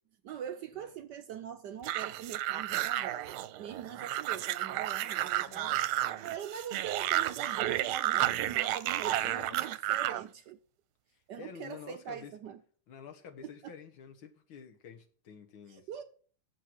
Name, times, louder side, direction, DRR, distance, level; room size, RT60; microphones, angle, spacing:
voice 1, 0.2-5.8 6.2-10.6 11.3-12.6 15.7-16.0, right 9 dB, 70° right, 1.1 m, -42 dB
sound 1, 1.8-10.2, right 14 dB, 85° right, 1.5 m, -32 dB
voice 2, 5.4-5.8 9.2-9.6 9.9-10.2 11.1-12.4 12.9-15.9, left 7 dB, 70° left, 2.0 m, -50 dB
8.0 x 7.4 x 6.1 m
omnidirectional pair, 2.3 m